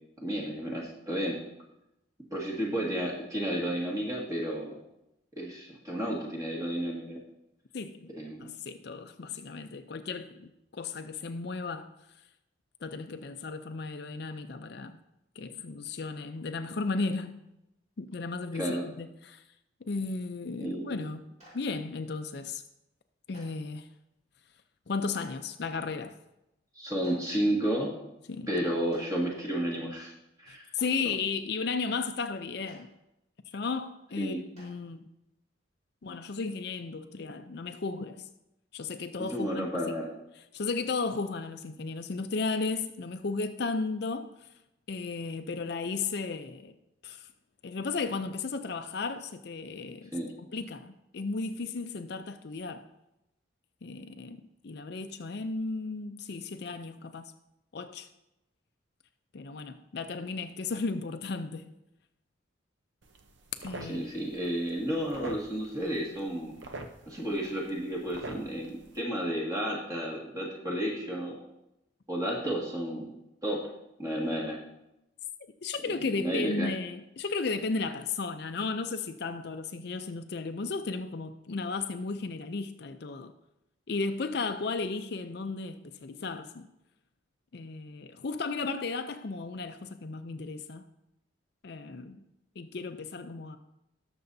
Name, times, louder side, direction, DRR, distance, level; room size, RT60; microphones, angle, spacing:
voice 1, 0.2-1.4 2.3-4.8 5.4-7.2 8.2-8.5 18.5-18.9 20.6-21.1 26.8-27.9 28.5-30.1 30.4-30.7 34.2-34.4 39.2-40.1 50.1-50.3 63.8-66.5 67.1-71.4 72.1-73.1 73.4-73.6 74.0-74.6 75.9-76.7, right 1 dB, 15° right, 1.9 m, -32 dB
voice 2, 7.7-8.1 8.4-11.9 12.8-15.0 15.4-17.4 18.0-19.4 19.9-21.3 21.5-22.6 23.3-23.9 24.9-26.2 28.3-28.5 30.7-32.9 33.5-35.0 36.0-38.3 38.7-40.0 40.5-44.3 44.9-46.7 47.0-47.3 47.6-50.1 50.4-52.8 53.8-54.4 54.6-57.3 57.7-58.1 59.3-61.7 63.6-64.1 75.6-83.3 83.9-86.7 87.5-90.9 91.6-92.2 92.6-93.6, left 4 dB, 55° left, 0.5 m, -34 dB
Clapping, 21.4-21.5 23.3-23.4 25.1-25.2 27.0-27.1 28.9-29.0 30.7-30.9 32.6-32.7 34.5-34.6, right 1 dB, 35° right, 4.1 m, -53 dB
sound 1, 63.0-69.0, right 2 dB, 70° right, 0.8 m, -46 dB
18.0 x 6.8 x 2.7 m
head